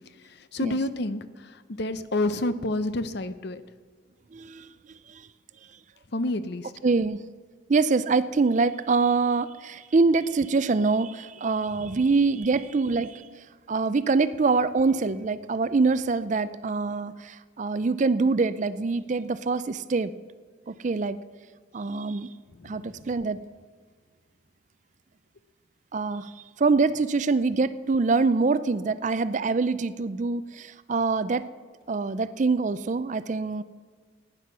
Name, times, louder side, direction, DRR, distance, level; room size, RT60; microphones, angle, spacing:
voice 1, 0.2-3.6 6.1-6.7 11.8-11.9 22.6-23.0, left 2 dB, 55° left, 12 dB, 0.7 m, -29 dB
voice 2, 4.3-4.7 5.1-5.2 6.8-7.2 7.7-13.3 13.7-20.1 20.7-21.2 21.7-22.3 22.6-23.4 25.9-26.3 26.6-31.5 31.9-33.6, right 4 dB, 40° right, 14 dB, 0.4 m, -24 dB
15.5 x 9.9 x 6.1 m, 1.5 s
head